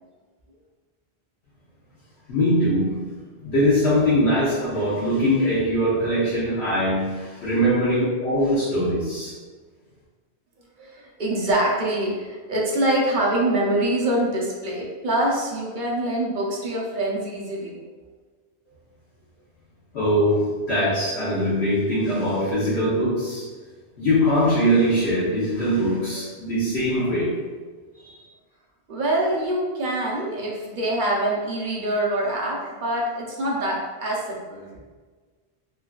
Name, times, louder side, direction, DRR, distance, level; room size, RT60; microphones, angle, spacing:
voice 1, 2.3-3.0 3.4-9.4 19.9-23.5 24.0-27.4 27.9-28.2, equal, 80° left, -12 dB, 1.2 m, -22 dB
voice 2, 10.8-17.8 28.9-34.7, right 1 dB, 55° right, -3 dB, 0.7 m, -25 dB
3.6 x 2.3 x 2.3 m, 1.4 s
omnidirectional pair, 1.1 m